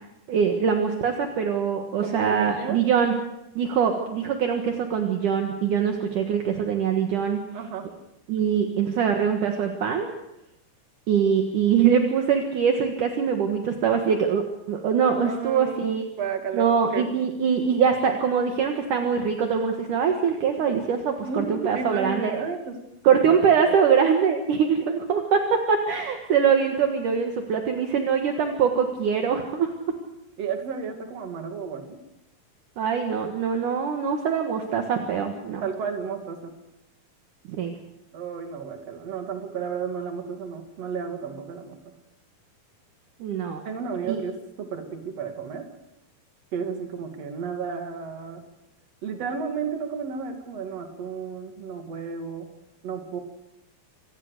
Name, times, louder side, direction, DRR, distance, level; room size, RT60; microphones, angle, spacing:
voice 1, 0.3-3.1 3.5-7.4 8.3-10.1 11.1-16.0 16.5-22.3 23.0-29.7 32.8-35.6 37.5-37.7 43.2-43.6 44.1-44.2, right 7 dB, 60° right, 4 dB, 2.9 m, -23 dB
voice 2, 2.0-2.9 7.5-7.9 15.2-17.1 21.2-22.8 23.1-23.3 30.4-32.0 35.6-36.5 38.1-41.9 43.6-45.7 46.5-48.4 49.0-52.5 52.8-53.2, right 5 dB, 45° right, 5 dB, 3.2 m, -32 dB
27.0 x 19.0 x 6.7 m, 0.88 s
omnidirectional pair, 4.4 m